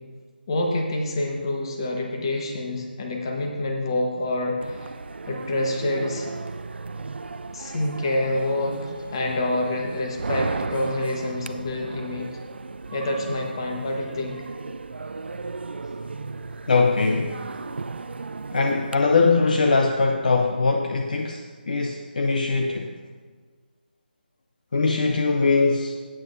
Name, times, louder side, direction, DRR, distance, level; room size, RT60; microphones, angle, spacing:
voice 1, 0.5-4.9 5.3-6.3 7.5-12.3 12.9-14.4, left 1 dB, 25° left, 1 dB, 1.2 m, -27 dB
sound 1, 4.6-19.0, right 4 dB, 90° right, 0.4 m, -35 dB
voice 2, 16.7-17.4 18.5-23.0 24.7-26.0, left 4 dB, 50° left, 3 dB, 0.6 m, -21 dB
15.0 x 8.9 x 2.6 m, 1.5 s
figure-of-eight pair, 170°, 6 cm